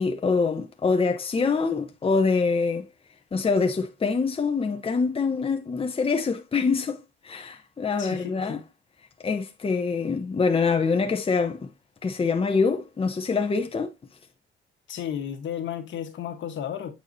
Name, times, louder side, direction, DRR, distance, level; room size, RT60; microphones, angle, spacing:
voice 1, 0.0-2.9 3.3-8.6 9.2-11.7 12.0-13.9, left 4 dB, 30° left, 1.0 m, -25 dB
voice 2, 8.0-8.6 14.9-16.9, left 9 dB, 70° left, 1.4 m, -33 dB
8.3 x 4.7 x 2.8 m
cardioid pair, 90°, 20 cm